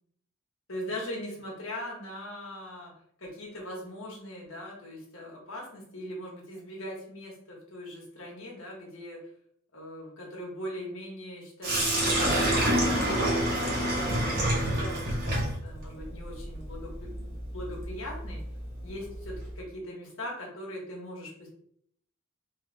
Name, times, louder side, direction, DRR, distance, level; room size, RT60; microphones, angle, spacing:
voice 1, 0.7-2.9 3.2-9.2 9.7-18.4 18.8-21.5, left 1 dB, 75° left, -2 dB, 1.5 m, -41 dB
Sink (filling or washing), 11.6-19.5, right 1 dB, 45° right, 1.3 m, -28 dB
3.4 x 3.2 x 3.4 m, 0.67 s
head